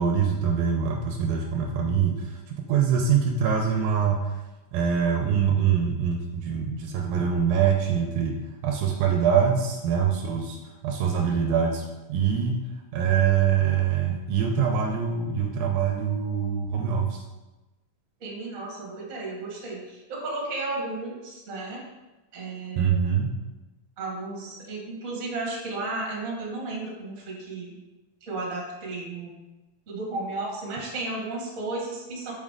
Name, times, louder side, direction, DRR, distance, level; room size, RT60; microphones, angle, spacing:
voice 1, 0.0-4.4 4.7-8.4 8.6-12.6 12.9-17.2 22.8-23.3, right 7 dB, 80° right, 2 dB, 2.3 m, -24 dB
voice 2, 18.2-21.8 22.3-22.9 24.0-27.8 28.2-29.4 29.9-32.3, right 2 dB, 35° right, -3 dB, 1.4 m, -33 dB
6.4 x 5.6 x 3.7 m, 1.1 s
omnidirectional pair, 4.4 m